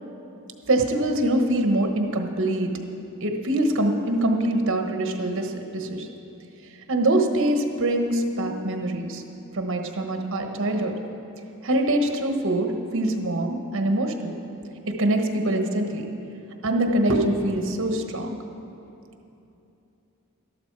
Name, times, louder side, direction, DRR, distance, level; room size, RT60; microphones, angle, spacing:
voice 1, 0.6-2.7 3.2-6.1 6.9-9.2 9.5-10.9 11.6-14.4 14.9-16.1 16.6-18.4, right 1 dB, 60° right, 4 dB, 1.1 m, -24 dB
12.5 x 12.0 x 4.6 m, 2.8 s
head